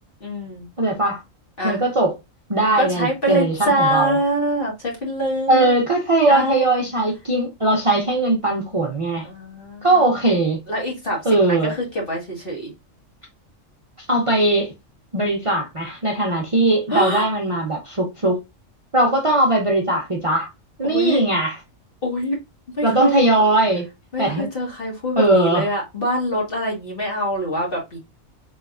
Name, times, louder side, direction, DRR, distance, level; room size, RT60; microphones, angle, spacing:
voice 1, 0.2-0.7 1.6-1.8 2.6-5.7 6.3-6.7 9.2-10.0 10.7-12.7 16.9-17.3 20.8-21.2 22.0-22.4 22.8-23.1 24.1-28.0, right 1 dB, 45° left, 1.7 m, -24 dB
voice 2, 0.8-1.2 1.6-2.1 2.5-4.2 5.5-9.3 9.8-10.6 11.2-11.7 14.1-14.7 15.1-18.4 18.9-20.5 20.8-21.6 22.8-23.9 24.2-24.5 25.2-25.6, right 2 dB, 30° right, 0.6 m, -19 dB
4.0 x 3.3 x 2.5 m
omnidirectional pair, 1.4 m